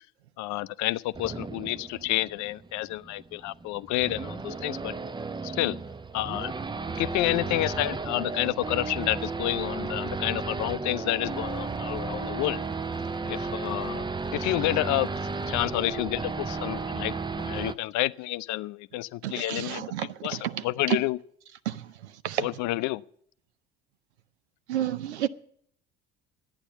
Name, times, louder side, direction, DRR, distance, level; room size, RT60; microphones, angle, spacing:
voice 1, 0.4-4.9 5.4-5.8 6.1-6.5 7.0-12.6 13.3-14.0 14.3-15.1 15.5-19.8 20.2-21.2 22.4-23.0, left 17 dB, 60° left, 0.5 m, -29 dB
Race car auto racing / Idling / Accelerating revving vroom, 1.1-17.7, right 4 dB, 15° right, 0.5 m, -34 dB
voice 2, 19.2-21.0 21.7-21.9 22.2-22.5 24.7-25.3, right 12 dB, 90° right, 0.6 m, -30 dB
11.5 x 8.9 x 8.1 m
hypercardioid pair, 60°, 32 cm